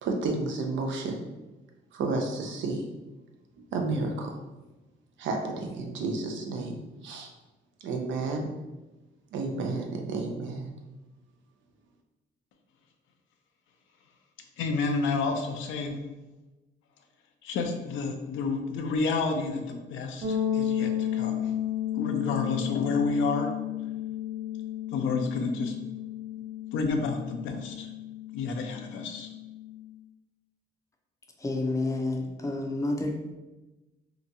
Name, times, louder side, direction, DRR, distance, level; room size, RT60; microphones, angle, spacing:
voice 1, 0.0-1.2 1.9-2.9 3.6-4.4 5.2-7.3 7.8-8.5 9.3-10.7, right 3 dB, 70° right, 3 dB, 0.5 m, -31 dB
voice 2, 14.6-16.0 17.4-21.5 21.9-23.5 24.9-25.7 26.7-27.9 28.3-29.3, left 4 dB, 85° left, 4 dB, 0.4 m, -30 dB
sound 1, 20.2-29.9, left 10 dB, 30° right, 0.7 m, -33 dB
voice 3, 31.4-33.2, left 2 dB, 15° left, 2 dB, 0.5 m, -29 dB
2.8 x 2.2 x 2.6 m, 1.1 s
cardioid pair, 90°, 20 cm